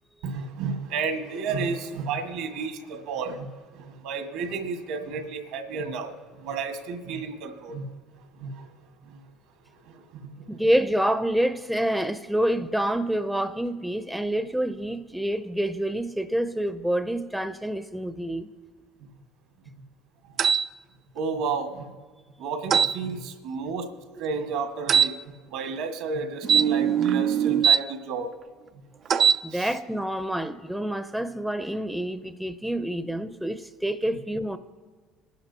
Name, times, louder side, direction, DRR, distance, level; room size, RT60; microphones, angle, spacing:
voice 1, 0.2-7.9 8.4-8.7 9.0-9.2 9.9-10.6 19.0-19.1 21.1-21.9 22.4-23.9 24.2-28.3 29.5-29.7, right 4 dB, 75° right, 1.7 m, -32 dB
voice 2, 10.5-18.5 24.2-24.3 29.4-34.6, right 1 dB, 5° right, 0.6 m, -27 dB
sound 1, 20.4-20.6 22.7-22.9 24.9-25.1 26.4-27.8 29.1-29.4, right 8 dB, 50° right, 0.4 m, -20 dB
22.5 x 11.5 x 2.8 m
hypercardioid pair, 70°, 0 cm